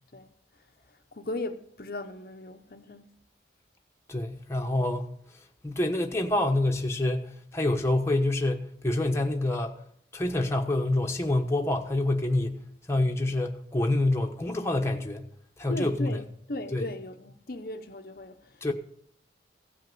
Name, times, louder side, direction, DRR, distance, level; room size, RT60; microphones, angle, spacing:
voice 1, 0.9-3.1 15.7-18.7, left 2 dB, 55° left, 0.8 m, -37 dB
voice 2, 4.1-5.1 5.6-9.7 10.1-12.6 12.9-15.3 15.6-16.1 16.7-16.9 18.6-18.7, left 2 dB, 15° left, 1.1 m, -27 dB
16.0 x 5.8 x 7.8 m
head